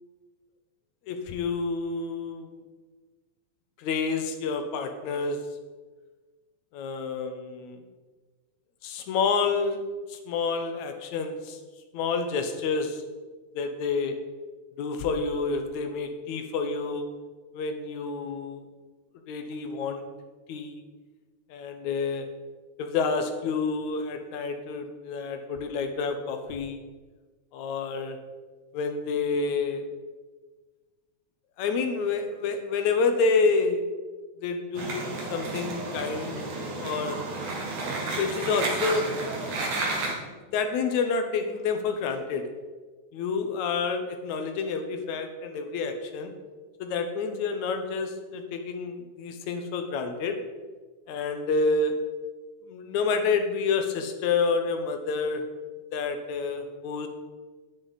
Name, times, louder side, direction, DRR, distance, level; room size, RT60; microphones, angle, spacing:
voice 1, 1.1-2.5 3.8-5.4 6.7-7.8 8.8-9.8 10.1-11.6 11.9-13.0 13.5-14.1 14.8-17.1 17.5-18.6 19.3-20.0 20.5-20.8 21.5-22.3 22.8-26.8 27.5-28.2 28.7-29.9 31.6-33.8 34.4-36.5 36.8-37.2 38.1-39.2 40.2-42.4 43.1-46.3 46.8-50.4 51.1-52.0 52.6-55.4 55.9-57.1, left 4 dB, 80° left, 6 dB, 2.3 m, -28 dB
sound 1, 34.7-40.1, right 2 dB, 85° right, 3.3 m, -32 dB
10.0 x 9.8 x 4.1 m, 1.3 s
omnidirectional pair, 3.3 m